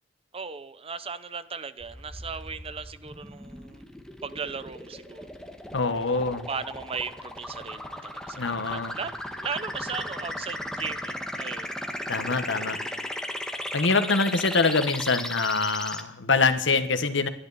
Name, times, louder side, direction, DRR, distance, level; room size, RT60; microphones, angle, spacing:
voice 1, 0.3-3.8 4.2-5.7 6.1-11.8, right 5 dB, 30° right, 14 dB, 0.8 m, -37 dB
sound 1, 1.8-16.0, left 1 dB, 5° left, 1.7 m, -36 dB
voice 2, 5.7-6.5 8.4-8.9 12.1-12.8 13.7-17.3, left 4 dB, 75° left, 10 dB, 1.4 m, -24 dB
28.0 x 11.5 x 4.2 m, 0.76 s
head